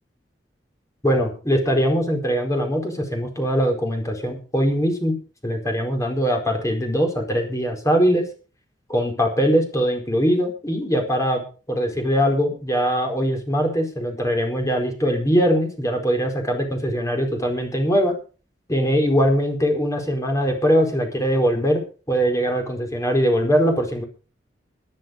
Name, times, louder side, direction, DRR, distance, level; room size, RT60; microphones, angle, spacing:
voice 1, 1.0-5.2 5.4-8.2 8.9-11.4 11.7-18.1 18.7-24.0, equal, 20° left, 3 dB, 4.5 m, -21 dB
13.5 x 12.0 x 5.3 m, 0.37 s
head